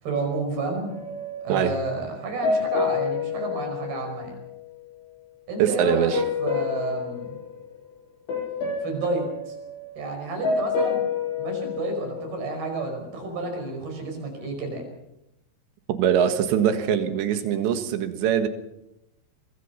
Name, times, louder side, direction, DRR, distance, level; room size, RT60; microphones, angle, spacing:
voice 1, 0.0-1.0 1.4-4.4 5.5-6.1 6.4-7.4 8.8-9.6 10.0-11.0 11.4-14.8, right 3 dB, 55° right, 3 dB, 7.1 m, -30 dB
sound 1, 0.9-4.7 6.1-8.0 8.3-12.8, left 5 dB, 80° left, 10.0 m, -29 dB
voice 2, 5.6-6.2 15.9-18.5, right 9 dB, 75° right, 8 dB, 3.7 m, -22 dB
24.0 x 23.5 x 5.7 m, 0.85 s
omnidirectional pair, 5.4 m